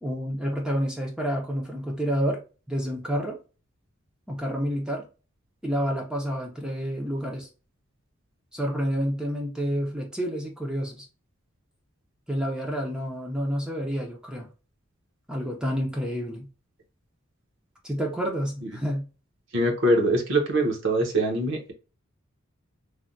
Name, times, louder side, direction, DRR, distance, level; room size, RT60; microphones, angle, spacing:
voice 1, 0.0-2.4 2.7-3.4 4.3-5.1 5.6-7.5 8.5-11.1 12.3-14.5 15.3-16.5 17.8-19.1, equal, 5° right, 0.5 m, -29 dB
voice 2, 19.5-21.7, right 1 dB, 60° right, 0.8 m, -23 dB
3.3 x 2.2 x 2.5 m
head